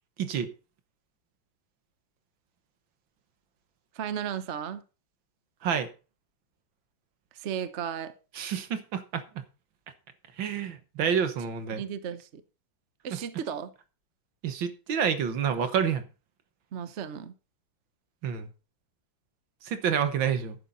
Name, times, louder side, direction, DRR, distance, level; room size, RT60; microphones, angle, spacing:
voice 1, 0.2-0.5 5.6-5.9 8.4-9.4 10.4-11.8 14.4-16.0 18.2-18.5 19.6-20.6, right 7 dB, 70° right, 1.9 m, -28 dB
voice 2, 3.9-4.8 7.3-8.1 11.7-12.4 13.0-13.7 16.7-17.3, right 8 dB, 45° right, 0.9 m, -34 dB
11.5 x 9.4 x 4.0 m
omnidirectional pair, 2.2 m